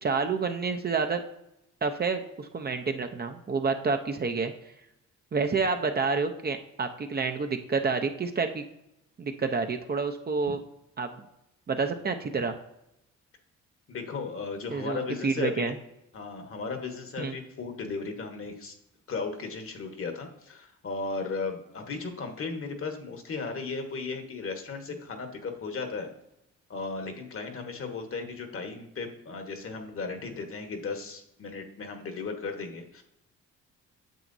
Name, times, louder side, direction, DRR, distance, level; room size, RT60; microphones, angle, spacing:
voice 1, 0.0-1.2 1.8-4.5 5.3-8.6 9.2-10.6 11.0-11.2 11.7-12.5 14.7-15.7 17.2-17.4, right 4 dB, 30° right, 6 dB, 0.7 m, -29 dB
voice 2, 13.9-15.7 16.1-18.7 19.1-26.1 26.7-33.0, left 4 dB, 45° left, 5 dB, 1.3 m, -35 dB
9.1 x 7.1 x 2.7 m, 0.84 s
cardioid pair, 90°, 30 cm